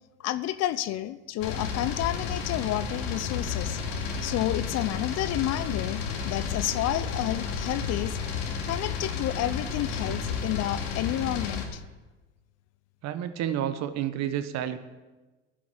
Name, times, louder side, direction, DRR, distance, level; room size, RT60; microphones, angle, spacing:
voice 1, 0.2-3.8 4.2-8.2 8.6-11.8, left 13 dB, 50° left, 15 dB, 0.8 m, -30 dB
sound 1, 1.4-11.6, left 6 dB, 75° left, 2.6 m, -32 dB
voice 2, 13.0-14.8, right 10 dB, 50° right, 11 dB, 1.2 m, -30 dB
11.0 x 7.7 x 9.7 m, 1.2 s
hypercardioid pair, 90°, 33 cm